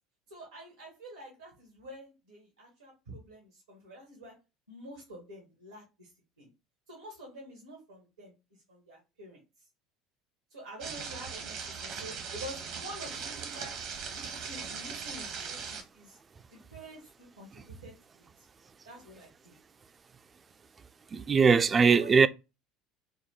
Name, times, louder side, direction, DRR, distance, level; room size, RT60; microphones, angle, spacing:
voice 1, 0.3-4.3 4.7-6.1 6.4-6.5 6.9-8.3 8.7-9.4 10.5-13.8 14.1-16.2 16.5-18.2 18.8-19.5 21.9-22.3, equal, 90° right, 1.4 m, -48 dB
sound 1, 10.8-15.8, right 6 dB, 60° right, 0.9 m, -39 dB
voice 2, 21.1-22.3, right 5 dB, 30° right, 0.3 m, -21 dB
4.3 x 2.2 x 2.9 m
hypercardioid pair, 70°, 0 cm